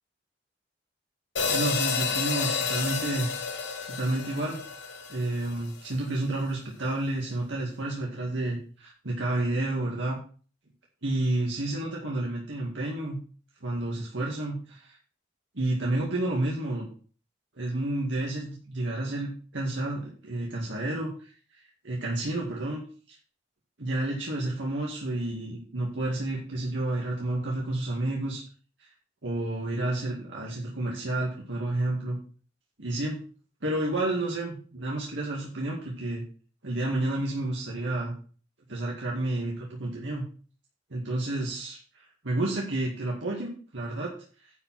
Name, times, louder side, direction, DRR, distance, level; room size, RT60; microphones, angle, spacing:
sound 1, 1.4-5.7, left 5 dB, 80° left, 3.1 m, -30 dB
voice 1, 1.5-3.4 3.9-4.6 5.1-10.2 11.0-13.2 13.6-15.0 15.5-16.9 17.6-21.3 21.8-22.8 23.8-28.4 29.2-32.2 32.8-33.2 33.6-36.2 36.6-38.2 38.7-40.2 40.9-44.1, right 2 dB, 85° right, -3 dB, 2.1 m, -30 dB
11.0 x 4.8 x 5.9 m, 0.41 s
head